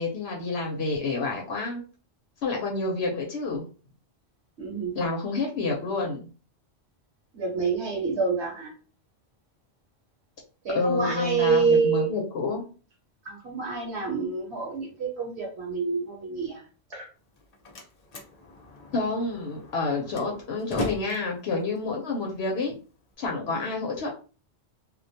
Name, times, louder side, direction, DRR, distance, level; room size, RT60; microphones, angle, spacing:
voice 1, 0.0-1.8 2.4-3.6 4.9-6.3 10.7-12.6 18.9-22.7 23.2-24.1, left 3 dB, 70° left, 0 dB, 0.8 m, -28 dB
voice 2, 4.6-5.0 7.3-8.7 10.6-12.1 13.2-16.6 16.9-17.1 23.4-23.6, right 5 dB, 70° right, 0 dB, 1.0 m, -27 dB
Slam, 17.2-23.1, left 2 dB, 45° left, 0.5 m, -39 dB
2.3 x 2.2 x 2.6 m, 0.36 s
omnidirectional pair, 1.2 m